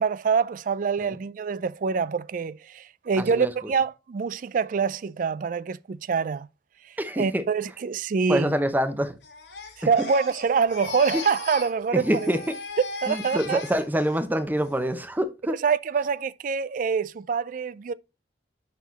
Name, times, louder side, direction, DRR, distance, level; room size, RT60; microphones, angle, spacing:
voice 1, 0.0-6.5 7.2-8.6 9.9-12.3 13.0-13.6 15.6-17.9, right 5 dB, 50° right, 0.3 m, -25 dB
voice 2, 3.2-3.5 7.0-7.4 8.3-9.2 11.1-11.2 11.9-12.5 13.1-15.6, equal, 10° right, 0.7 m, -26 dB
Crying sobbing, 9.2-11.7 12.0-14.2 14.6-15.0, left 4 dB, 75° left, 1.8 m, -38 dB
6.0 x 4.3 x 4.0 m
head